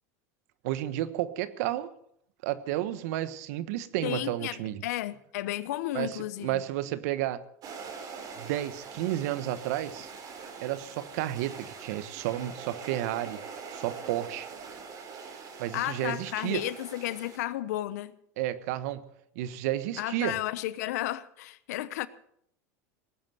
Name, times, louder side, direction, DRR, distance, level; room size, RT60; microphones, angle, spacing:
voice 1, 0.6-1.9 2.4-4.8 5.9-7.4 8.4-10.1 10.6-13.4 13.7-14.5 15.6-16.6 18.4-19.1 19.3-20.4, right 13 dB, 75° right, 1.3 m, -32 dB
voice 2, 4.0-6.6 15.7-18.1 20.0-22.1, left 15 dB, 80° left, 0.9 m, -33 dB
sound 1, 7.6-17.4, right 5 dB, 45° right, 4.7 m, -43 dB
19.0 x 8.9 x 7.9 m
supercardioid pair, 100°, 9 cm